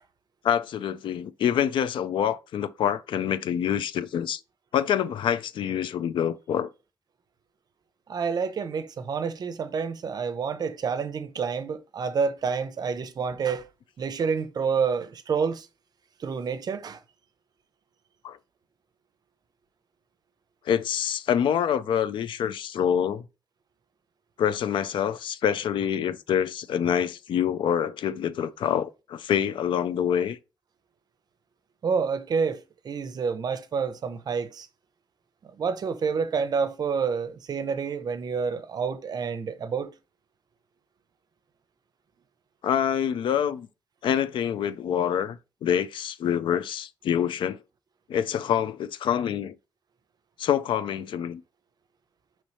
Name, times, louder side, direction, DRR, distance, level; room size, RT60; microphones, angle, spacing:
voice 1, 0.4-4.4 4.7-6.7 18.2-18.4 20.7-23.2 24.4-30.4 42.6-43.7 44.0-47.6 48.1-49.5 50.4-51.4, left 9 dB, 85° left, 0.4 m, -26 dB
voice 2, 8.1-13.6 14.0-15.7 16.2-17.0 31.8-34.7 35.6-39.9, right 5 dB, 55° right, 0.6 m, -28 dB
5.4 x 3.1 x 3.1 m
cardioid pair, 115°, 8 cm